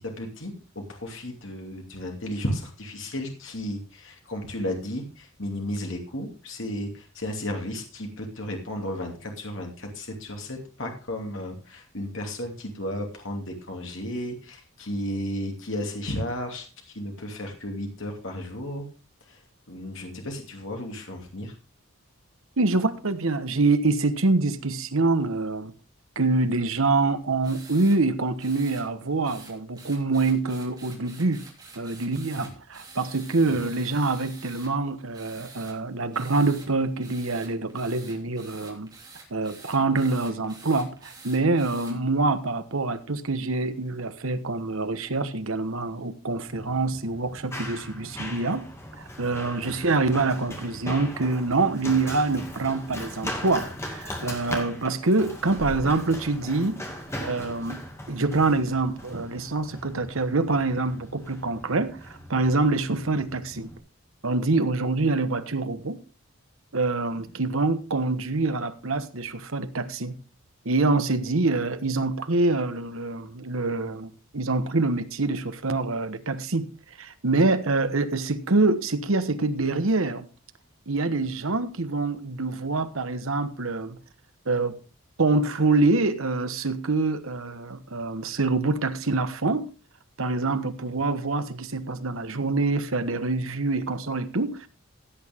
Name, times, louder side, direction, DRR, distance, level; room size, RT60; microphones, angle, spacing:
voice 1, 0.2-18.9 19.3-19.4 19.7-21.5 33.6-33.7 67.1-67.2, left 1 dB, 65° left, 2.7 m, -34 dB
voice 2, 22.6-25.7 26.2-31.4 31.8-38.9 39.3-48.7 49.0-56.8 57.2-57.8 58.1-63.7 64.2-66.0 66.7-70.2 70.6-76.7 77.0-80.3 80.9-84.0 84.5-84.8 85.2-89.7 90.2-94.7, right 3 dB, 75° right, 1.2 m, -25 dB
sound 1, 27.4-28.0 28.4-28.9 29.2-34.7 35.1-35.8 36.1-36.7 37.0-41.9, right 4 dB, 20° right, 3.0 m, -47 dB
Run, 46.5-63.8, equal, 15° left, 2.2 m, -39 dB
15.5 x 8.7 x 3.6 m
head